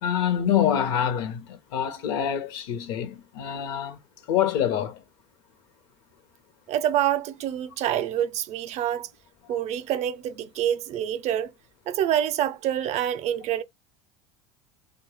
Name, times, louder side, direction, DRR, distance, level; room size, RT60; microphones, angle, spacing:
voice 1, 0.0-4.0 4.3-5.0 9.5-9.6, left 9 dB, 65° left, 0.8 m, -26 dB
voice 2, 6.7-9.1 9.5-11.5 11.9-13.6, right 11 dB, 50° right, 0.5 m, -26 dB
3.3 x 2.2 x 3.0 m
hypercardioid pair, 90°, 15 cm